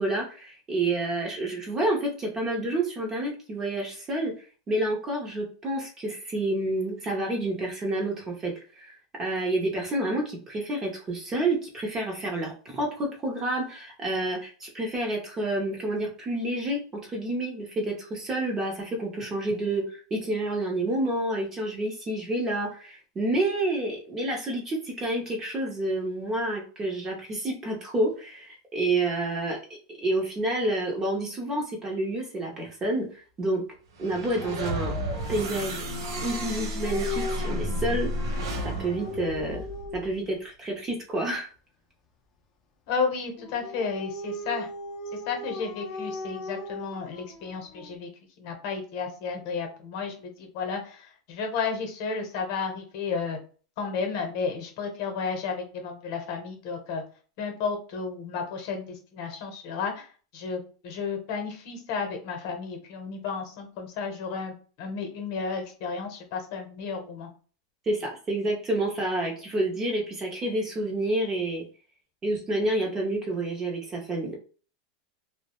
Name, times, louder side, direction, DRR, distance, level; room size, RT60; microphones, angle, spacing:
voice 1, 0.0-4.3 4.7-29.6 30.0-33.1 33.4-33.6 34.0-34.9 35.3-35.8 36.2-38.3 38.8-39.6 39.9-41.5 67.9-71.6 72.2-74.4, right 1 dB, 20° right, 0 dB, 0.6 m, -29 dB
sound 1, 33.9-40.2, right 1 dB, 85° right, 0.7 m, -32 dB
Dog, 34.4-40.2 43.4-48.0, left 3 dB, 25° left, 0.4 m, -38 dB
voice 2, 42.9-44.7 45.3-48.1 48.4-53.4 53.8-57.0 57.4-60.1 60.3-67.3, left 5 dB, 50° left, 4 dB, 0.8 m, -32 dB
2.2 x 2.0 x 2.9 m, 0.39 s
supercardioid pair, 160°, 2 cm